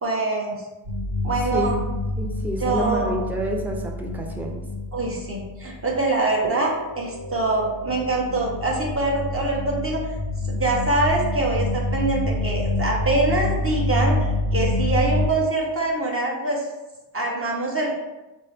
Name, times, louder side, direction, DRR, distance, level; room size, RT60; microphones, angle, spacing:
voice 1, 0.0-0.6 1.2-1.8 2.6-3.1 4.9-10.1 10.5-16.7 17.1-18.0, right 2 dB, 30° right, -2 dB, 1.0 m, -24 dB
sound 1, 0.8-6.0 6.4-15.2, left 1 dB, 80° right, 1.1 m, -27 dB
voice 2, 1.4-1.8 2.2-4.6, right 1 dB, 5° right, 1 dB, 0.5 m, -28 dB
5.2 x 2.1 x 3.3 m, 1.1 s
cardioid pair, 85°, 46 cm